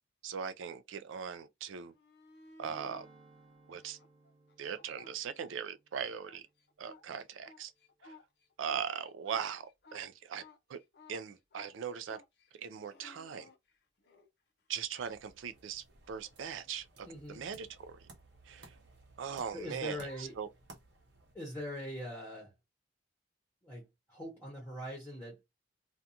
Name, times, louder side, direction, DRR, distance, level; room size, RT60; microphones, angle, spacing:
voice 1, 0.2-1.9 2.6-3.1 3.7-4.0 4.6-6.4 6.8-7.7 8.0-8.1 8.6-10.4 10.7-10.8 11.1-12.2 12.6-13.5 14.7-18.0 18.5-18.7 19.2-20.5, right 7 dB, 75° right, 0.4 m, -40 dB
sound 1, 1.8-3.1 3.7-5.8 6.1-14.3 17.1-17.2, left 2 dB, 55° left, 0.5 m, -58 dB
Strum, 2.6-7.3 7.7-7.9, right 3 dB, 30° right, 0.8 m, -62 dB
sound 2, 14.8-21.4, right 2 dB, 60° right, 0.8 m, -58 dB
voice 2, 17.0-17.5 19.5-20.4 21.3-22.5 23.6-25.4, equal, 10° left, 0.8 m, -42 dB
2.5 x 2.2 x 2.7 m
head